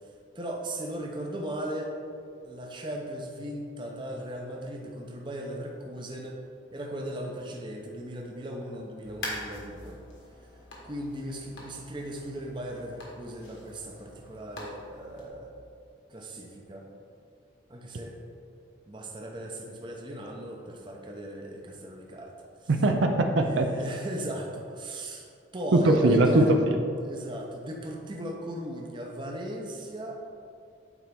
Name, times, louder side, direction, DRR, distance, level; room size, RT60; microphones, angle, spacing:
voice 1, 0.4-1.9 2.4-6.4 6.7-10.0 10.8-15.5 16.1-16.9 17.7-18.2 18.9-22.3 22.6-22.7 23.4-25.3 25.5-26.5 27.0-30.1, right 1 dB, 25° right, 0 dB, 0.6 m, -37 dB
sound 1, 9.0-15.3, left 1 dB, 80° left, 1.4 m, -44 dB
voice 2, 22.7-23.7 25.7-26.8, right 2 dB, 75° right, 4 dB, 0.5 m, -21 dB
8.2 x 4.3 x 3.6 m, 2.4 s
head